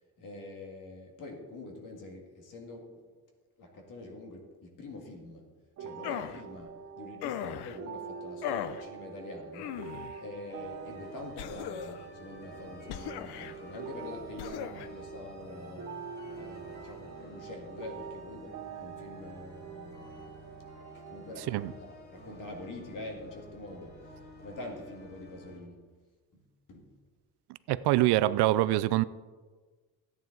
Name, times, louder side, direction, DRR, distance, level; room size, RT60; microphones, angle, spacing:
voice 1, 0.2-2.9 3.6-5.4 5.8-9.8 10.2-15.9 16.3-20.1 20.9-25.8 26.3-26.9, left 2 dB, 50° left, 1.9 m, -45 dB
sound 1, 5.8-21.8, right 7 dB, 40° right, 0.8 m, -45 dB
sound 2, 6.0-6.4 7.2-7.8 8.4-8.8 9.5-10.2 11.4-12.1 12.9-13.5 14.4-14.9, left 10 dB, 80° left, 0.6 m, -37 dB
sound 3, 10.5-25.6, left 1 dB, 25° left, 2.4 m, -51 dB
voice 2, 27.7-29.0, right 16 dB, 85° right, 0.5 m, -25 dB
13.5 x 9.2 x 3.9 m
cardioid pair, 175°, 39 cm